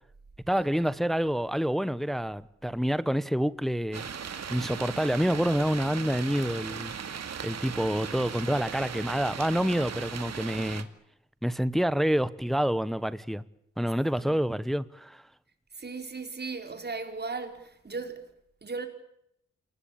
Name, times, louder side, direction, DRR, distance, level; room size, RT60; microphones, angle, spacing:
voice 1, 0.5-4.1 4.5-6.9 7.4-10.9 11.4-13.4 13.8-15.2, equal, ahead, 1.0 m, -27 dB
sound 1, 3.9-10.8, right 7 dB, 65° right, 2.4 m, -38 dB
voice 2, 15.7-18.2 18.6-18.9, right 4 dB, 35° right, 4.7 m, -37 dB
28.5 x 19.5 x 8.8 m
wide cardioid pair, 110°, 29 cm